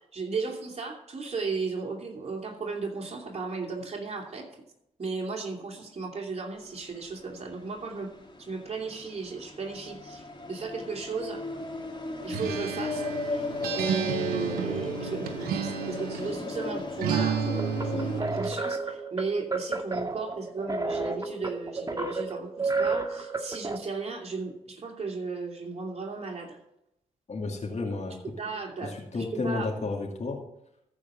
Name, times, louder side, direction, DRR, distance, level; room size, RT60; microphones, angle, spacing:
voice 1, 0.1-4.5 5.0-8.1 8.4-11.7 12.2-13.5 13.7-26.6 28.4-29.7, right 4 dB, 45° right, -1 dB, 2.9 m, -35 dB
sound 1, 6.5-18.2, left 2 dB, 30° left, 2.6 m, -37 dB
Acoustic guitar, 12.3-16.4 17.0-18.6, right 7 dB, 90° right, 0.9 m, -31 dB
sound 2, 17.6-23.8, right 3 dB, 25° right, 1.6 m, -31 dB
voice 2, 27.3-28.2 28.8-30.4, left 3 dB, 50° left, 0 dB, 2.5 m, -32 dB
14.5 x 5.1 x 7.8 m, 0.82 s
supercardioid pair, 45°, 15 cm